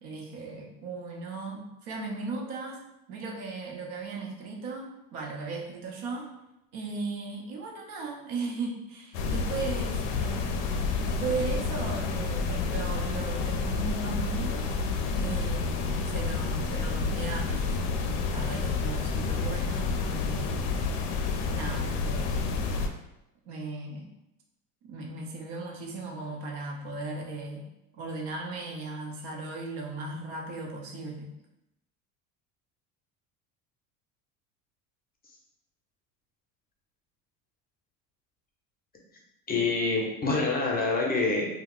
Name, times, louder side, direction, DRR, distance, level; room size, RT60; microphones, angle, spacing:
voice 1, 0.0-2.8 3.1-6.3 6.7-10.7 11.0-17.9 18.3-20.8 21.5-22.6 23.5-24.1 24.9-27.7 28.0-31.3, right 3 dB, 60° right, 0 dB, 0.8 m, -37 dB
sound 1, 9.1-22.9, left 4 dB, 65° left, 0.5 m, -29 dB
voice 2, 39.5-41.5, left 3 dB, 20° left, -1 dB, 0.7 m, -26 dB
2.3 x 2.2 x 3.6 m, 0.90 s
hypercardioid pair, 80°, 43 cm